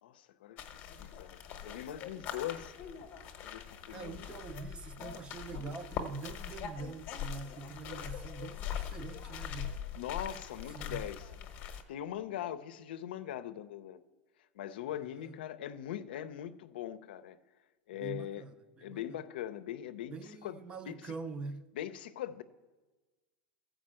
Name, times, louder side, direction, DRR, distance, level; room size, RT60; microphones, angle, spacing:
voice 1, 0.0-2.7 3.4-4.3 9.9-11.3 11.9-14.0 14.5-17.4 17.9-18.4 18.8-20.1 20.4-20.6 20.9-21.1 21.7-22.4, left 11 dB, 80° left, 0.6 m, -41 dB
sound 1, 0.6-11.8, left 8 dB, 35° left, 0.9 m, -42 dB
voice 2, 3.9-9.8 10.7-11.0 14.8-15.4 17.9-19.2 20.1-21.7, right 4 dB, 20° right, 0.5 m, -44 dB
14.0 x 5.0 x 7.5 m
supercardioid pair, 160°, 5 cm